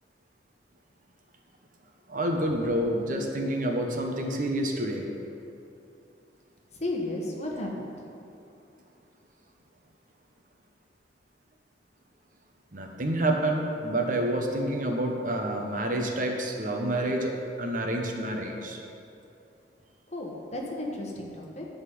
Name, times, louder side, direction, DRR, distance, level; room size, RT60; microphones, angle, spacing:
voice 1, 2.1-5.1 12.7-18.8, right 1 dB, 50° right, 2 dB, 1.0 m, -28 dB
voice 2, 6.8-8.1 20.1-21.6, left 1 dB, 40° left, -1 dB, 1.4 m, -34 dB
11.5 x 4.0 x 7.7 m, 2.7 s
head